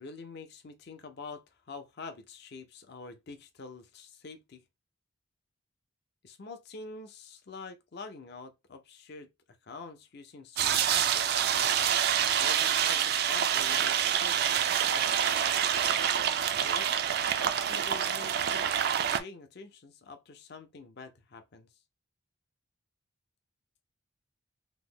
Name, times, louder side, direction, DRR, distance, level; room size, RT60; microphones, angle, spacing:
voice 1, 0.0-4.6 6.2-9.3 9.6-11.4 12.2-15.4 16.5-16.9 17.3-18.7 19.2-21.7, left 4 dB, 50° left, 0.5 m, -46 dB
sound 1, 10.6-19.2, right 9 dB, 50° right, 0.3 m, -27 dB
2.9 x 2.1 x 3.6 m
head